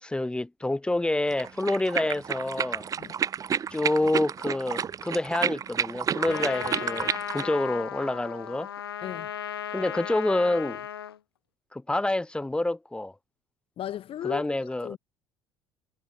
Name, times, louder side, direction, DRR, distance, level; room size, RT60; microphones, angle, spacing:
voice 1, 0.0-2.9 3.7-8.7 9.7-10.8 11.7-13.1 14.2-15.0, left 2 dB, 10° left, 0.7 m, -28 dB
sound 1, 1.3-7.5, right 7 dB, 30° right, 0.5 m, -30 dB
Trumpet, 6.2-11.2, left 9 dB, 85° left, 0.4 m, -36 dB
voice 2, 13.8-14.4 14.8-15.0, left 11 dB, 45° left, 4.5 m, -35 dB
figure-of-eight pair, 60°, 12 cm